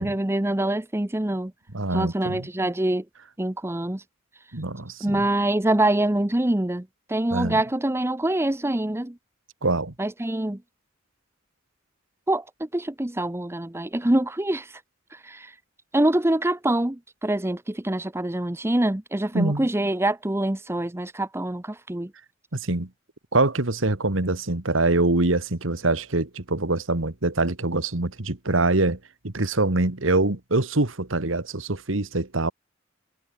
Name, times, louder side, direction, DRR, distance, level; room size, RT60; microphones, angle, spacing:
voice 1, 0.0-1.5 1.9-3.0 3.4-4.0 5.0-9.2 10.0-10.6 12.3-14.7 15.1-15.5 15.9-22.1, right 1 dB, 15° right, 0.8 m, -25 dB
voice 2, 1.7-2.5 4.5-5.2 7.3-7.6 9.6-9.9 19.3-19.7 22.6-22.9 23.3-29.0 29.2-32.5, right 2 dB, 70° right, 1.9 m, -24 dB
head